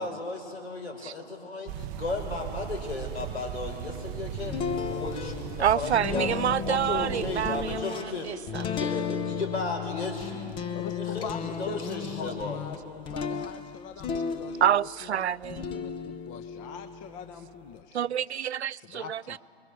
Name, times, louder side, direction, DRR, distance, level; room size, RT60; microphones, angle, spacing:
voice 1, 0.0-4.6 4.9-6.3 6.6-8.3 8.6-10.5 10.9-12.6, left 3 dB, 80° left, 5.9 m, -35 dB
sound 1, 1.7-7.8, right 10 dB, 20° right, 0.5 m, -38 dB
sound 2, 4.4-15.0 15.4-17.8, left 6 dB, 15° left, 0.7 m, -35 dB
voice 2, 5.6-8.7 14.6-15.7 17.9-19.4, right 10 dB, 85° right, 0.5 m, -28 dB
voice 3, 10.7-18.4 18.7-19.4, left 7 dB, 30° left, 1.2 m, -42 dB
25.5 x 22.5 x 6.6 m
hypercardioid pair, 130°, 32 cm